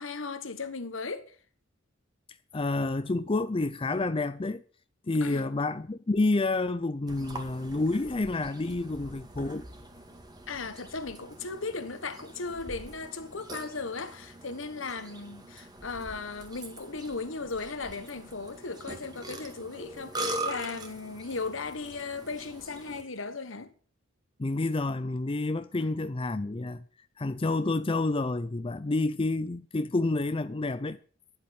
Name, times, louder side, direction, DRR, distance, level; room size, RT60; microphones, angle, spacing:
voice 1, 0.0-1.4 5.2-5.5 10.5-23.7 25.8-25.9, left 4 dB, 70° left, 1.4 m, -37 dB
voice 2, 2.5-4.6 5.1-9.7 24.4-26.8 27.2-31.0, left 2 dB, 25° left, 0.5 m, -29 dB
Burping eructation, 7.1-23.0, right 2 dB, 20° right, 2.1 m, -42 dB
11.5 x 7.7 x 8.5 m
head